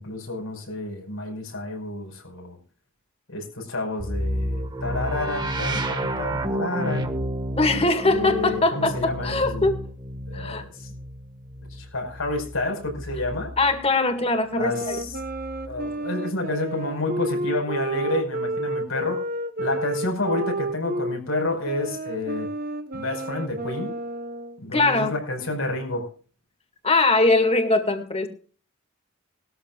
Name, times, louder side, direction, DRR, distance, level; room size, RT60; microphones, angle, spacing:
voice 1, 0.0-2.6 3.3-7.1 7.7-9.7 10.3-10.9 11.7-13.5 14.6-15.1 15.7-19.2 19.6-22.5 22.9-23.9 24.6-26.1, left 2 dB, 85° left, 3 dB, 5.2 m, -29 dB
sound 1, 4.0-13.8 14.8-15.9, right 1 dB, 20° right, 1.6 m, -31 dB
voice 2, 7.6-9.8 10.3-10.6 13.6-15.0 24.7-25.1 26.8-28.3, left 2 dB, 30° left, 7 dB, 2.0 m, -21 dB
sound 2, 14.5-21.2 21.6-24.6, right 2 dB, 45° right, 1.1 m, -31 dB
20.0 x 13.5 x 2.4 m, 0.39 s
head